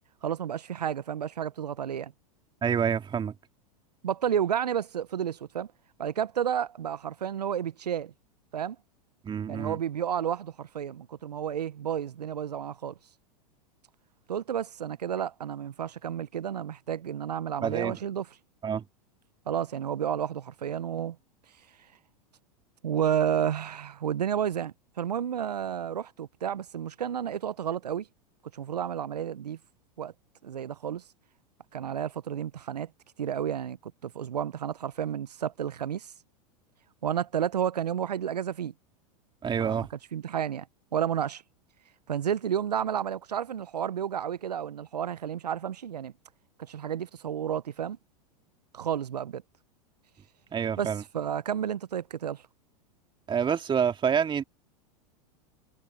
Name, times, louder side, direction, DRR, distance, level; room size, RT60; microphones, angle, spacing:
voice 1, 0.2-2.1 4.0-5.7 6.0-8.1 8.5-8.8 9.5-12.9 14.3-18.3 19.5-21.2 22.8-28.1 28.5-29.6 30.0-30.1 30.4-31.0 31.7-32.9 33.2-36.1 37.0-38.7 39.6-40.7 40.9-41.4 42.1-46.1 46.6-48.0 48.7-49.4 50.8-52.4, right 9 dB, 90° right, 0.8 m, -31 dB
voice 2, 2.6-3.3 9.2-9.8 17.6-17.9 18.6-18.8 39.4-39.9 50.5-51.0 53.3-54.4, right 7 dB, 25° right, 2.5 m, -27 dB
hypercardioid pair, 100°, 20 cm